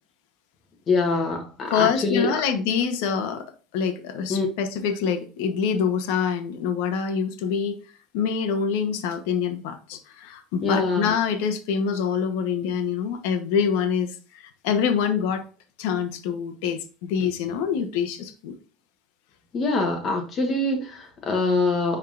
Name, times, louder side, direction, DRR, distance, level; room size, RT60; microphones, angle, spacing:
voice 1, 0.9-2.4 4.3-4.5 10.6-11.1 19.5-22.0, left 3 dB, 35° left, 1.1 m, -24 dB
voice 2, 1.7-3.4 3.7-7.8 8.1-14.1 14.6-15.4 15.8-18.6, left 7 dB, 85° left, 1.0 m, -25 dB
10.0 x 3.7 x 2.5 m
cardioid pair, 140°, 0 cm